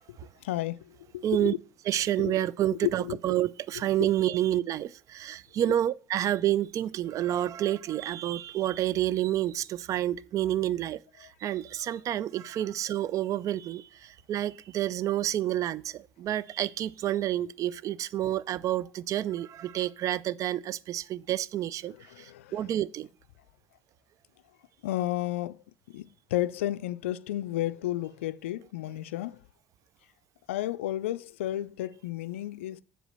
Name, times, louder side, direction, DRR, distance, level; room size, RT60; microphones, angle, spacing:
voice 1, 0.1-1.6 2.2-2.3 2.7-3.2 3.7-4.1 11.8-12.2 22.1-22.7 24.8-29.4 30.5-32.8, left 14 dB, 90° left, 0.3 m, -33 dB
voice 2, 1.2-1.5 1.9-23.1, right 12 dB, 55° right, 0.4 m, -29 dB
7.5 x 4.9 x 6.6 m
hypercardioid pair, 65°, 7 cm